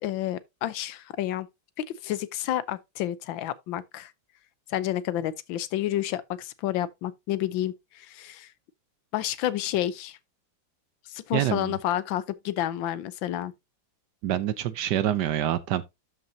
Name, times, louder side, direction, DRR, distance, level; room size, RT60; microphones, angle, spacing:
voice 1, 0.0-1.5 2.0-4.1 4.7-8.5 9.1-10.2 11.1-13.5, left 12 dB, 85° left, 1.5 m, -30 dB
voice 2, 11.3-11.8 14.2-15.8, right 11 dB, 70° right, 1.2 m, -26 dB
12.0 x 5.6 x 2.7 m
omnidirectional pair, 2.1 m